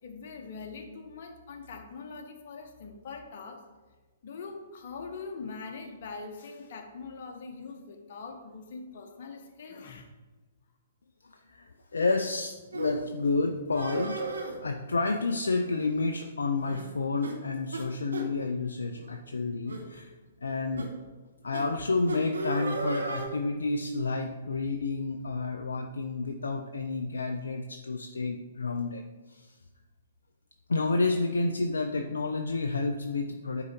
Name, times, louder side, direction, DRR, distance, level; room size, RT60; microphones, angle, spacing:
voice 1, 0.0-3.6 4.2-10.1, left 4 dB, 50° left, 4 dB, 1.1 m, -42 dB
voice 2, 11.5-14.3 14.6-20.1 20.4-20.9 21.4-29.0 29.3-29.5 30.7-33.6, left 3 dB, 75° left, 4 dB, 0.5 m, -30 dB
sound 1, 12.7-12.9 13.7-14.6 15.5-15.9 16.2-16.3 16.7-16.9 17.2-17.4 17.7-17.8 18.1-18.3 19.0-19.1 19.7-19.9 20.8-20.9 21.5-21.6 22.1-23.3, right 3 dB, 75° right, 1.2 m, -35 dB
9.4 x 3.9 x 4.4 m, 1.2 s
figure-of-eight pair, 120°, 0 cm